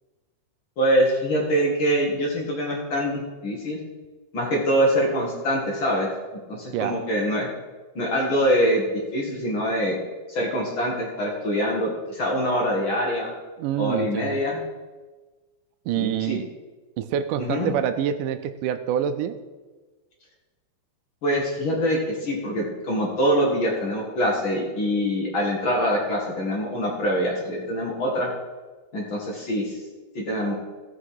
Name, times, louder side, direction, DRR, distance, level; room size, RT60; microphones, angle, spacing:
voice 1, 0.8-3.8 4.3-6.1 6.5-7.5 8.0-8.8 9.1-10.0 10.3-13.3 13.8-14.6 15.9-16.4 17.4-17.7 21.2-28.3 28.9-29.8 30.2-30.5, equal, 45° left, -2 dB, 2.1 m, -24 dB
voice 2, 13.6-14.4 15.9-16.5 17.0-19.4, right 10 dB, 80° right, 10 dB, 2.1 m, -26 dB
15.5 x 6.0 x 4.8 m, 1.3 s
omnidirectional pair, 3.8 m